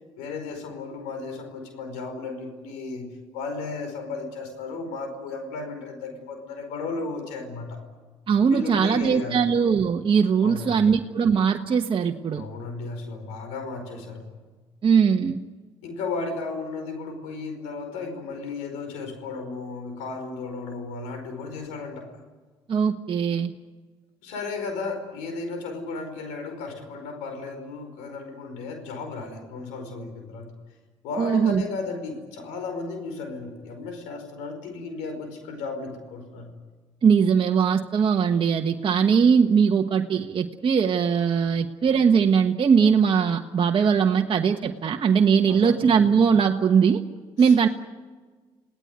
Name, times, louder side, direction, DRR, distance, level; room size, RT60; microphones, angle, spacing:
voice 1, 0.2-7.8 8.5-9.5 10.4-10.9 12.3-14.2 15.8-22.1 24.2-30.5 31.0-36.5 45.4-45.8 47.4-47.7, left 3 dB, 85° left, 6 dB, 5.0 m, -34 dB
voice 2, 8.3-12.4 14.8-15.4 22.7-23.5 31.2-31.6 37.0-47.0 47.4-47.7, right 6 dB, 45° right, 3 dB, 1.3 m, -20 dB
29.0 x 18.5 x 9.5 m, 1.4 s
supercardioid pair, 65°, 12 cm